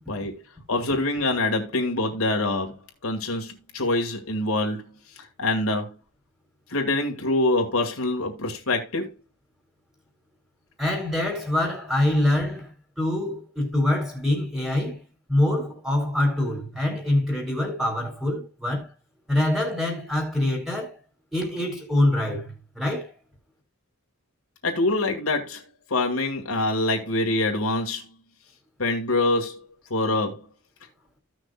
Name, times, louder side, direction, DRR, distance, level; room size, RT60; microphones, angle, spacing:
voice 1, 0.7-2.8 3.0-4.9 5.4-6.0 6.7-9.1 24.6-25.6 25.9-28.1 28.8-30.5, left 2 dB, 80° left, 2.0 m, -25 dB
voice 2, 10.8-15.0 15.3-18.9 19.3-21.0 21.3-23.1, left 1 dB, ahead, 3.0 m, -25 dB
15.5 x 6.3 x 2.4 m
head